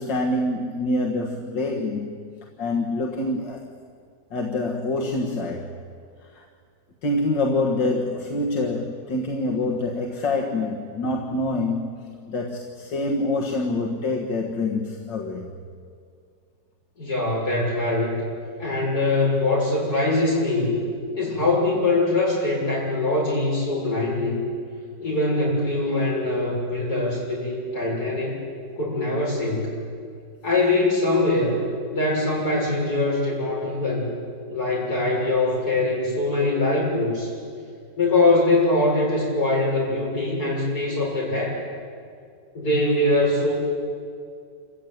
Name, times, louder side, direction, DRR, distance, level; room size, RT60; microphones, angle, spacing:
voice 1, 0.0-2.1 2.6-3.6 4.3-5.8 6.3-6.5 7.0-15.5, left 2 dB, 90° left, -1 dB, 2.3 m, -26 dB
voice 2, 17.0-18.2 18.6-20.8 21.2-24.4 25.0-28.4 28.7-29.8 30.4-31.6 31.9-34.1 34.5-37.3 38.0-41.7 42.5-43.6, left 2 dB, 60° left, -4 dB, 7.6 m, -22 dB
27.5 x 15.5 x 9.3 m, 2.2 s
omnidirectional pair, 1.9 m